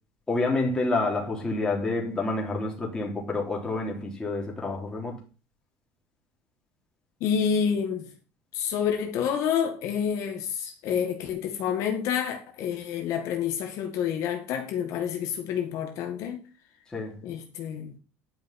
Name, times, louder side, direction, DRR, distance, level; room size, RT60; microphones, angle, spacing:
voice 1, 0.3-5.2 16.9-17.2, left 2 dB, 10° left, 3.5 m, -28 dB
voice 2, 7.2-8.1 8.5-16.4 17.2-17.9, left 8 dB, 50° left, 2.0 m, -28 dB
11.0 x 6.0 x 6.1 m
cardioid pair, 165°, 7 cm